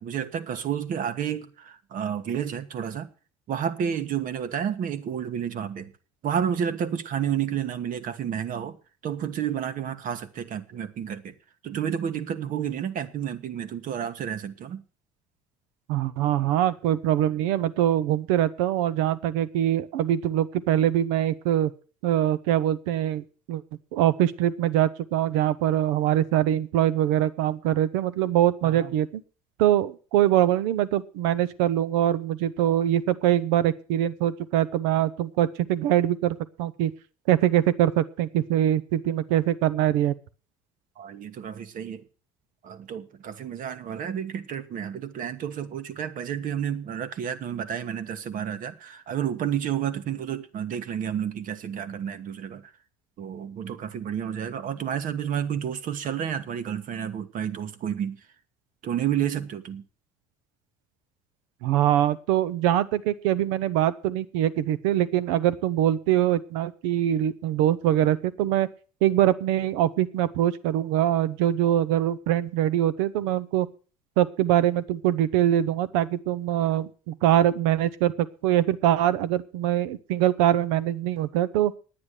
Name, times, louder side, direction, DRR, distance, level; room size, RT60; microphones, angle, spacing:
voice 1, 0.0-3.1 3.5-5.9 6.2-8.8 9.0-11.3 11.6-14.8 28.6-28.9 41.0-42.0 42.6-52.7 53.2-58.2 58.8-59.8, right 9 dB, 50° right, 1.4 m, -30 dB
voice 2, 15.9-21.7 22.0-23.6 23.9-29.2 29.6-36.9 37.3-40.1 61.6-68.7 69.0-73.7 74.2-81.7, right 12 dB, 75° right, 0.9 m, -23 dB
9.7 x 9.7 x 6.7 m
hypercardioid pair, 70°, 17 cm